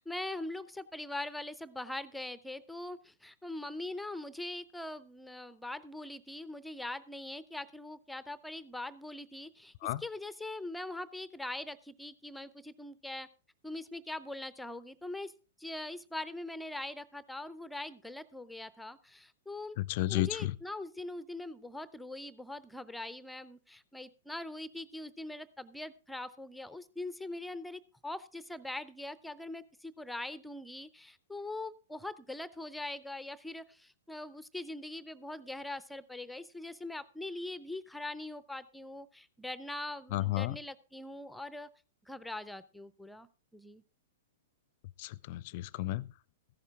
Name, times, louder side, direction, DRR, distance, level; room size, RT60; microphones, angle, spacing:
voice 1, 0.0-13.3 13.6-15.3 15.6-19.8 20.1-41.7 42.1-43.3 43.5-43.8, left 2 dB, 5° left, 0.6 m, -42 dB
voice 2, 19.9-20.5 40.1-40.6 45.0-46.1, left 17 dB, 45° left, 0.5 m, -32 dB
14.5 x 11.0 x 3.5 m
figure-of-eight pair, 105°, 0 cm